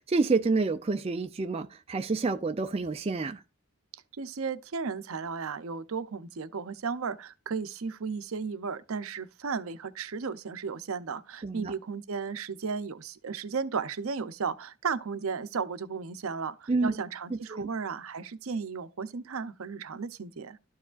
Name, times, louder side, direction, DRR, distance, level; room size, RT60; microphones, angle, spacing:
voice 1, 0.0-3.4 11.4-11.7 16.7-16.9 17.5-17.7, right 3 dB, 25° right, 0.4 m, -28 dB
voice 2, 4.2-20.6, right 5 dB, 70° right, 0.6 m, -34 dB
12.5 x 4.8 x 2.4 m
head